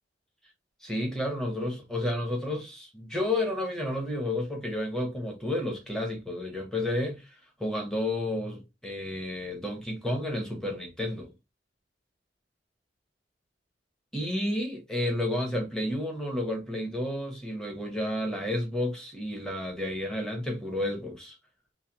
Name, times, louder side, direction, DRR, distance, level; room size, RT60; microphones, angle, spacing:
voice 1, 0.8-7.3 7.6-11.3 14.1-21.3, left 1 dB, 5° left, 0.9 m, -31 dB
3.2 x 2.2 x 2.8 m
head